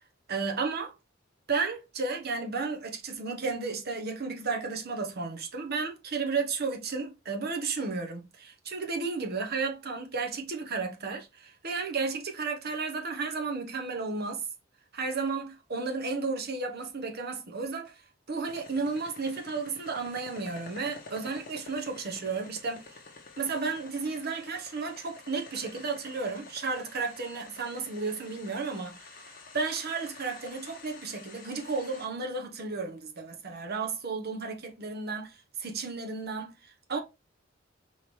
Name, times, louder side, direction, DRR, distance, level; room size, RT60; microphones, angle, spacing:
voice 1, 0.3-0.9 1.5-14.4 14.9-17.9 18.3-22.9 23.4-37.0, right 4 dB, 55° right, 1.0 m, -33 dB
sound 1, 18.5-32.1, left 4 dB, 50° left, 1.1 m, -49 dB
4.5 x 3.7 x 3.1 m
head